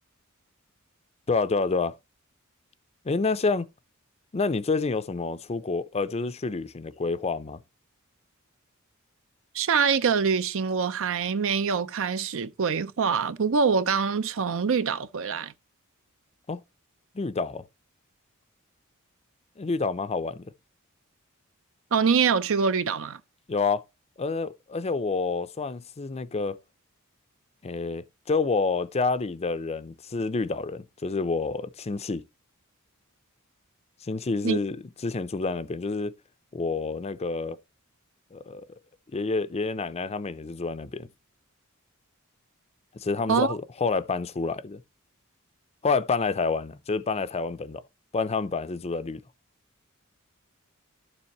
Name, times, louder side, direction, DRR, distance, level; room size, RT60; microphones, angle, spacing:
voice 1, 1.3-1.9 3.0-3.7 4.3-7.6 16.5-16.6 17.1-17.6 19.6-20.5 23.5-23.8 24.2-26.6 27.6-32.2 34.0-34.8 35.0-36.1 36.5-37.6 38.3-38.7 39.1-41.1 42.9-44.8 45.8-47.8 48.1-49.2, left 4 dB, 30° left, 0.5 m, -28 dB
voice 2, 9.5-15.5 21.9-23.2 34.4-34.6 43.3-43.6, right 6 dB, 65° right, 0.6 m, -24 dB
12.5 x 7.1 x 3.0 m
head